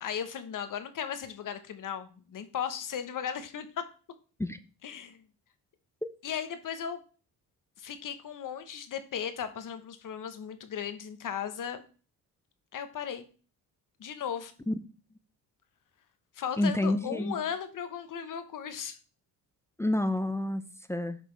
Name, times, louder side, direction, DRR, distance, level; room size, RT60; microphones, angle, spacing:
voice 1, 0.0-3.8 4.8-5.2 6.2-7.0 7.8-11.8 12.7-13.2 14.0-14.5 16.4-19.0, left 8 dB, 55° left, 10 dB, 1.0 m, -36 dB
voice 2, 16.6-17.3 19.8-21.2, left 1 dB, 5° left, 10 dB, 0.4 m, -29 dB
7.8 x 5.1 x 3.3 m, 0.37 s
cardioid pair, 105°, 38 cm